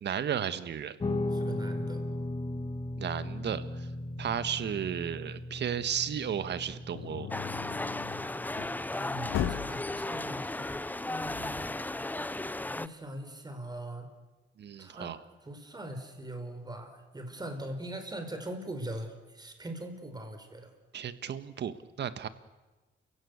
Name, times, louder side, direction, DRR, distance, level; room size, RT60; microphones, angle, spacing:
voice 1, 0.0-1.0 3.0-3.9 4.2-7.3 14.6-15.2 20.9-22.3, right 9 dB, 60° right, 13 dB, 1.6 m, -34 dB
Guitar, 1.0-10.3, left 1 dB, 25° left, 1.8 m, -38 dB
voice 2, 1.3-2.0 8.9-11.7 12.7-14.1 14.8-15.1 15.4-20.7, right 1 dB, 20° right, 6 dB, 4.8 m, -41 dB
sound 1, 6.9-8.8 9.3-9.9, left 11 dB, 80° left, 1.4 m, -36 dB
sound 2, 7.3-12.9, left 2 dB, 10° left, 0.7 m, -35 dB
29.5 x 16.5 x 8.2 m, 1.2 s
cardioid pair, 90°, 20 cm